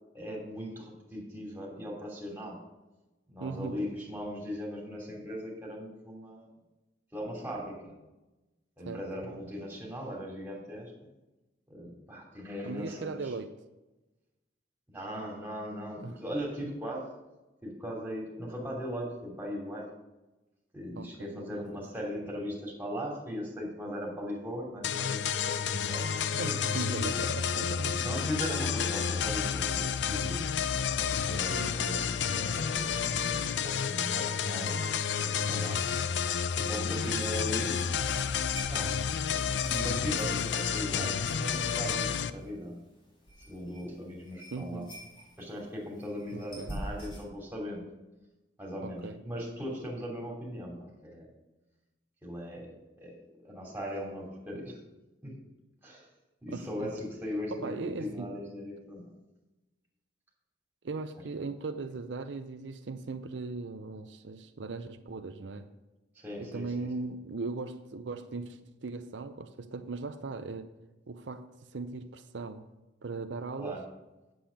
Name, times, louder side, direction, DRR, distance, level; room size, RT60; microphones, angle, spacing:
voice 1, 0.1-2.6 3.3-6.5 7.1-7.9 8.8-10.9 11.7-13.3 14.9-17.1 17.6-19.9 20.7-27.1 28.0-30.4 31.0-33.0 33.6-35.8 36.5-37.8 38.7-38.9 39.3-42.7 43.5-44.8 45.4-47.8 48.6-51.3 52.2-52.7 53.0-53.1 53.4-54.8 55.2-55.3 55.8-56.1 56.4-59.0 66.1-66.9 73.6-73.8, equal, 10° right, -3 dB, 2.9 m, -39 dB
voice 2, 3.4-3.8 8.8-9.0 12.6-13.5 16.0-16.2 21.0-21.6 26.4-28.0 31.6-32.0 44.5-44.9 46.3-46.7 48.8-49.2 56.5-56.9 57.5-58.3 60.8-65.7 66.4-70.7 71.1-71.4 71.7-72.6 73.0-73.8, right 3 dB, 85° right, 8 dB, 0.6 m, -38 dB
sound 1, 24.8-42.3, left 7 dB, 75° left, 0.5 m, -30 dB
sound 2, 36.5-47.3, equal, 30° left, 3.9 m, -48 dB
8.6 x 7.8 x 5.2 m, 1.1 s
head